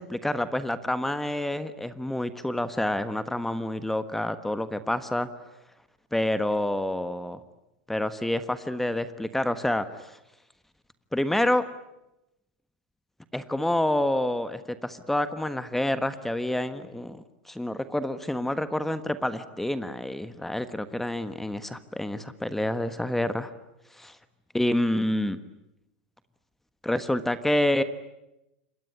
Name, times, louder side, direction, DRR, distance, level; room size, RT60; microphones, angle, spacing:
voice 1, 0.0-5.3 6.1-7.4 7.9-10.2 11.1-11.6 13.3-23.5 23.9-24.2 24.5-25.4 26.8-27.8, left 1 dB, 5° left, 12 dB, 1.4 m, -28 dB
27.0 x 22.0 x 10.0 m, 0.91 s
hypercardioid pair, 105°, 5 cm